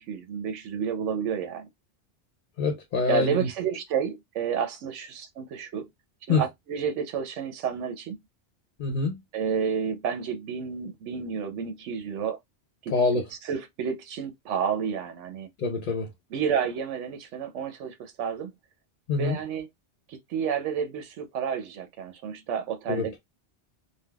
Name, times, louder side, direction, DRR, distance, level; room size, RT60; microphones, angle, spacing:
voice 1, 0.0-1.7 3.1-5.9 6.3-8.2 9.3-12.4 12.8-12.9 13.5-15.5 16.3-18.5 19.2-19.7 20.1-23.2, right 7 dB, 90° right, 1.0 m, -30 dB
voice 2, 2.6-3.5 6.3-6.4 8.8-9.2 12.9-13.3 15.6-16.1 19.1-19.4 22.9-23.2, left 4 dB, 55° left, 0.6 m, -25 dB
3.4 x 2.2 x 2.2 m
omnidirectional pair, 1.2 m